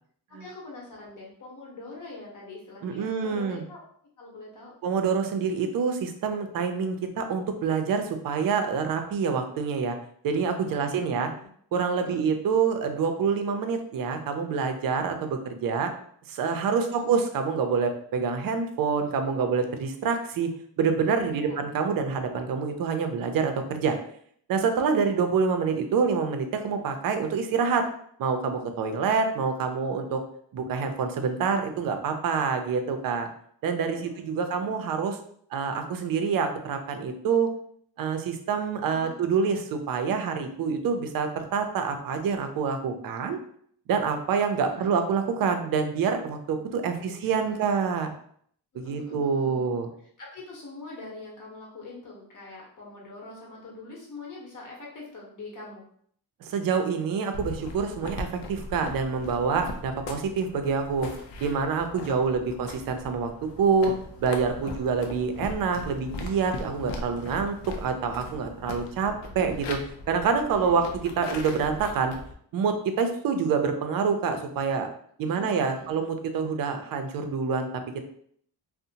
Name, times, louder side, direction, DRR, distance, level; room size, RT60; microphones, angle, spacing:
voice 1, 0.4-3.8 4.2-4.7 10.7-11.5 12.0-12.3 16.7-17.1 21.3-21.6 24.9-25.0 33.9-34.7 38.9-39.2 44.6-44.9 46.9-47.7 48.7-49.8 50.2-55.8 61.9-62.6 64.5-64.9 70.5-71.0 75.2-75.9 76.4-76.5, left 2 dB, 45° left, -3 dB, 1.0 m, -44 dB
voice 2, 2.8-3.6 4.8-10.0 10.2-11.3 11.7-15.9 16.3-20.5 20.8-24.0 24.5-27.9 28.2-30.2 30.5-33.3 33.6-35.2 35.5-37.5 38.0-43.4 43.9-48.1 48.7-49.9 56.4-61.1 61.4-63.9 64.2-69.8 70.1-70.9 71.2-72.1 72.5-74.9 75.2-78.1, right 5 dB, 50° right, 6 dB, 0.5 m, -26 dB
sound 1, 57.3-72.3, left 2 dB, 75° left, 0.6 m, -39 dB
2.7 x 2.1 x 2.7 m, 0.63 s
cardioid pair, 120°, 44 cm